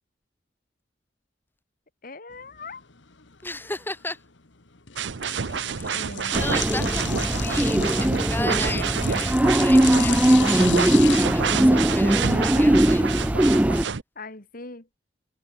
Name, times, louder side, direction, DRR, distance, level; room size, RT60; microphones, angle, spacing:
voice 1, 2.0-2.8 5.9-6.4 14.2-14.9, left 3 dB, 50° left, 2.9 m, -40 dB
sound 1, 2.3-11.3, left 12 dB, 90° left, 1.9 m, -36 dB
voice 2, 3.4-4.2 5.7-6.1 6.4-13.0, left 2 dB, 10° left, 3.0 m, -36 dB
sound 2, 5.0-14.0, right 6 dB, 70° right, 0.7 m, -28 dB
sound 3, 6.3-13.8, right 1 dB, 10° right, 0.4 m, -20 dB
head